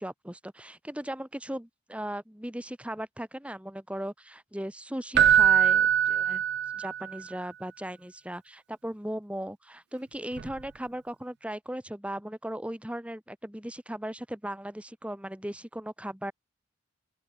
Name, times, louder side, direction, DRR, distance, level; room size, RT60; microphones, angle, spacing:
voice 1, 0.0-6.4 6.7-16.3, right 1 dB, 5° right, 1.5 m, -37 dB
Keyboard (musical), 5.1-7.1 10.4-10.5, right 9 dB, 55° right, 0.4 m, -22 dB
open air
head